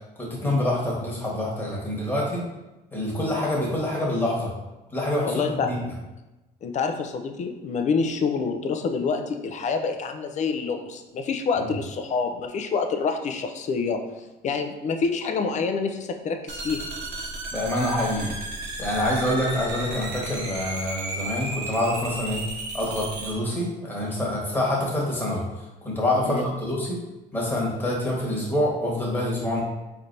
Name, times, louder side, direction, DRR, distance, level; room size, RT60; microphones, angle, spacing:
voice 1, 0.2-2.4 2.9-4.5 4.9-5.8 11.5-11.6 17.5-18.3 18.8-22.4 22.7-27.0 27.3-29.6, left 1 dB, 10° left, -4 dB, 1.3 m, -26 dB
voice 2, 5.2-5.9 6.6-14.0 14.4-16.9 26.2-26.4, left 5 dB, 45° left, 6 dB, 0.5 m, -27 dB
sound 1, 16.5-23.3, right 2 dB, 90° right, 0.8 m, -34 dB
4.2 x 3.3 x 2.6 m, 1.0 s
cardioid pair, 110°, 17 cm